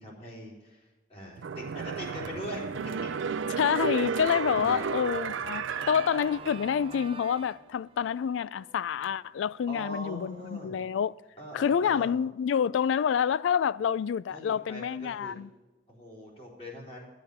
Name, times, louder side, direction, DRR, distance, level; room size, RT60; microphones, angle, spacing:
voice 1, 0.0-2.6 3.0-3.1 4.5-4.9 9.7-10.8 11.4-12.1 14.3-15.3 15.9-17.1, equal, 30° left, 4.0 m, -42 dB
sound 1, 1.4-6.9 7.3-7.4, right 6 dB, 85° right, 0.5 m, -33 dB
voice 2, 3.6-11.2 11.5-15.5, left 7 dB, 80° left, 0.3 m, -28 dB
Organ, 5.7-10.5, right 4 dB, 30° right, 0.6 m, -48 dB
11.0 x 10.5 x 5.5 m
head